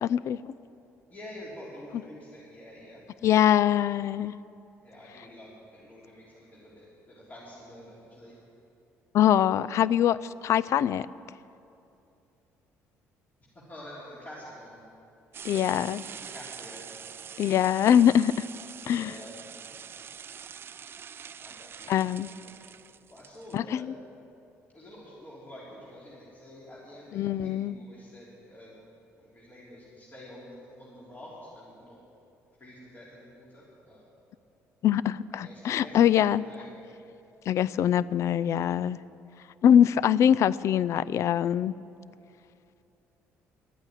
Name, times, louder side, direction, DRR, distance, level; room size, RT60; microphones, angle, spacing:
voice 1, 0.0-0.5 3.2-4.3 9.1-10.2 10.4-11.1 15.4-16.0 17.4-18.3 18.9-19.1 21.9-22.3 23.5-23.9 27.1-27.8 34.8-36.5 37.5-39.0 39.6-41.7, left 10 dB, 60° left, 18 dB, 0.4 m, -23 dB
voice 2, 1.1-3.0 4.8-8.3 13.7-14.8 15.5-16.8 18.9-19.4 21.4-21.9 22.4-22.6 23.1-23.9 24.7-28.8 29.2-32.0 32.6-34.0 35.3-36.7, left 1 dB, 30° left, -7 dB, 3.5 m, -47 dB
sound 1, 15.3-23.6, right 7 dB, 45° right, 0.4 m, -44 dB
12.0 x 8.9 x 9.2 m, 2.7 s
cardioid pair, 85°, 6 cm